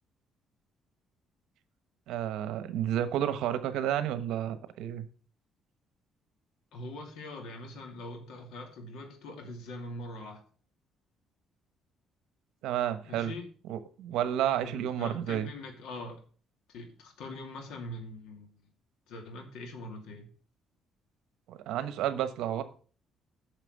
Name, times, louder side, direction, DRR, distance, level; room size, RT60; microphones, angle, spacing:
voice 1, 2.1-5.1 12.6-13.3 13.7-15.5 21.5-22.6, right 11 dB, 90° right, 11 dB, 1.1 m, -31 dB
voice 2, 6.7-10.4 13.0-13.5 14.6-16.2 16.7-18.5 19.1-20.3, left 1 dB, 90° left, 4 dB, 2.7 m, -43 dB
9.1 x 6.6 x 6.6 m, 0.42 s
cardioid pair, 160°, 0 cm